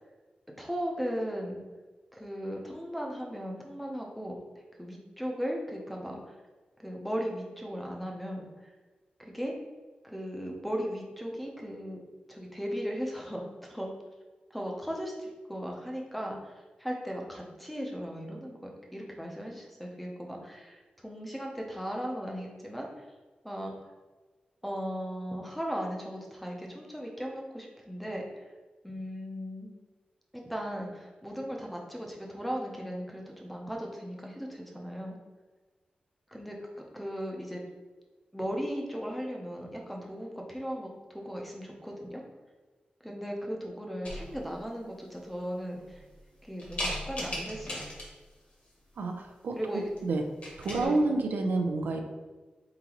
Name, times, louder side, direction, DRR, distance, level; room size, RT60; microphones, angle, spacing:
voice 1, 0.6-1.6 2.1-4.4 4.8-6.4 6.8-8.5 9.2-9.5 10.0-12.0 12.3-13.9 14.5-23.1 23.4-23.9 24.6-28.5 28.8-29.7 30.5-35.2 36.3-36.6 36.9-37.6 38.3-42.2 43.0-46.0 46.4-47.8 49.6-49.9 50.8-51.0, equal, ahead, -1 dB, 0.6 m, -37 dB
sound 1, 44.0-44.6 45.2-45.3 45.8-46.2 46.6-48.3 49.8-50.0 50.3-50.9, left 1 dB, 45° left, 1.2 m, -37 dB
voice 2, 49.0-49.6 50.0-50.2 50.6-52.0, right 2 dB, 85° right, 3 dB, 0.5 m, -28 dB
4.0 x 3.8 x 2.9 m, 1.3 s
wide cardioid pair, 160°, 3 cm